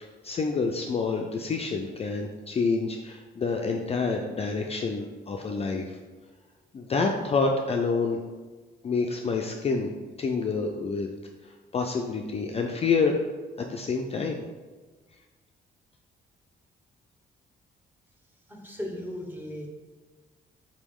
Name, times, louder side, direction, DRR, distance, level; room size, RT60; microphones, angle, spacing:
voice 1, 0.0-6.0 6.7-8.2 8.8-9.9 10.2-11.1 11.4-13.2 13.6-14.5, left 4 dB, 35° left, 2 dB, 0.4 m, -28 dB
voice 2, 18.5-19.7, left 1 dB, 10° right, -1 dB, 1.0 m, -36 dB
4.3 x 3.0 x 3.6 m, 1.3 s
cardioid pair, 80°, 19 cm